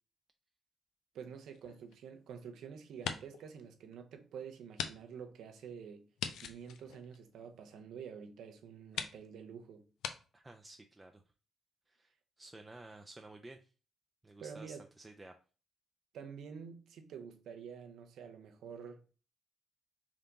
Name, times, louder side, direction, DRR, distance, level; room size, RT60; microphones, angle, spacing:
voice 1, 1.1-6.0 6.4-9.9 14.4-14.9 16.1-19.0, right 7 dB, 75° right, 0.7 m, -48 dB
sound 1, 1.5-2.5 2.9-3.5 3.9-4.0 4.7-4.9 5.2-5.3 6.2-7.7 8.4-8.5 8.9-9.2 10.0-10.2, left 8 dB, 80° left, 0.4 m, -41 dB
voice 2, 10.3-11.2 11.9-13.7 14.2-15.3, right 2 dB, 20° right, 0.4 m, -53 dB
3.6 x 2.8 x 3.9 m
supercardioid pair, 65°, 0 cm